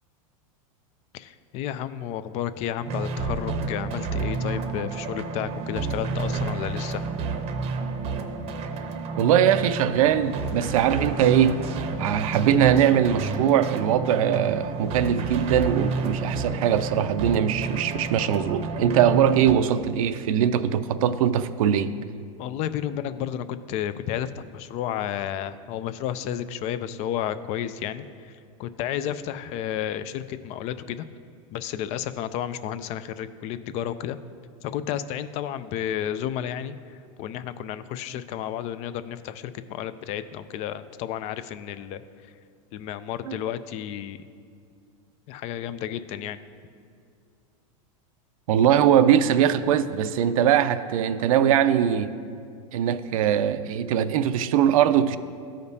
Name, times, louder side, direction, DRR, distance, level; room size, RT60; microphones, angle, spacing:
voice 1, 1.1-7.0 22.4-31.1 31.5-34.2 34.6-36.8 37.2-42.0 42.7-44.2 45.3-46.4, left 10 dB, 40° left, 0.4 m, -32 dB
sound 1, 2.9-19.5, right 4 dB, 35° right, 0.7 m, -30 dB
voice 2, 9.2-11.6 12.0-21.9 43.3-43.4 48.5-52.1 52.7-55.2, right 9 dB, 75° right, 0.5 m, -21 dB
14.0 x 5.0 x 2.7 m
supercardioid pair, 130°, 18 cm